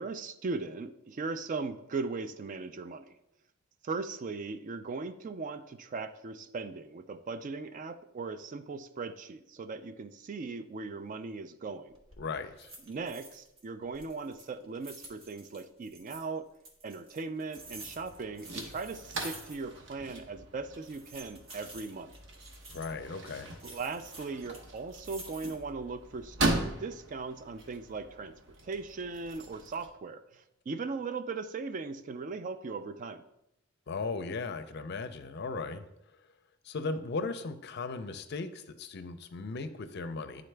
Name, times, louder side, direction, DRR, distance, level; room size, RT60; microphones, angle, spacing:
voice 1, 0.0-3.2 3.8-11.9 12.8-16.5 16.8-22.1 23.6-33.2, right 4 dB, 40° right, 10 dB, 0.3 m, -38 dB
sound 1, 11.9-12.2 12.6-13.6 13.9-16.2 16.6-19.8 20.1-20.2 20.7-23.0 23.6-25.7 26.2-26.7, right 2 dB, 80° right, 1.2 m, -50 dB
voice 2, 12.2-12.7 22.7-23.5 33.9-35.8 36.6-40.4, left 4 dB, 55° left, 10 dB, 0.5 m, -37 dB
sound 2, 17.5-29.9, right 2 dB, 65° right, 1.0 m, -39 dB
9.2 x 3.9 x 3.3 m, 0.84 s
head